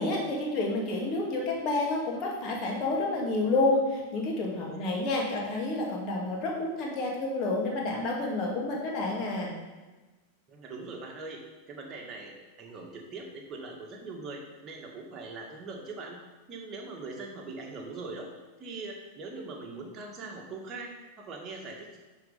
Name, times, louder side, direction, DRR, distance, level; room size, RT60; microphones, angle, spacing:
voice 1, 0.0-9.5, left 2 dB, 35° left, -2 dB, 2.3 m, -29 dB
voice 2, 10.5-16.2 16.5-18.3 18.6-22.0, right 3 dB, 25° right, 0 dB, 1.8 m, -41 dB
10.5 x 4.4 x 5.3 m, 1.2 s
figure-of-eight pair, 90°, 0 cm